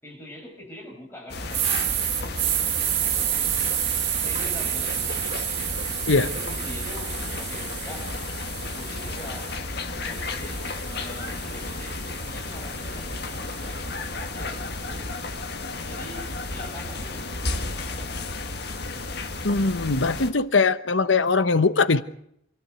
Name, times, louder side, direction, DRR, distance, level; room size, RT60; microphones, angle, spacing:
voice 1, 0.0-1.6 2.2-2.3 4.2-5.8 6.1-8.1 8.5-9.6 9.9-15.1 15.9-18.3, left 1 dB, 10° left, 6.7 m, -44 dB
sound 1, 1.3-20.3, left 3 dB, 55° left, 2.0 m, -33 dB
sound 2, 1.5-9.6 10.1-14.3, right 12 dB, 90° right, 1.5 m, -30 dB
voice 2, 19.4-22.0, left 4 dB, 80° left, 1.0 m, -21 dB
27.0 x 13.5 x 8.0 m
head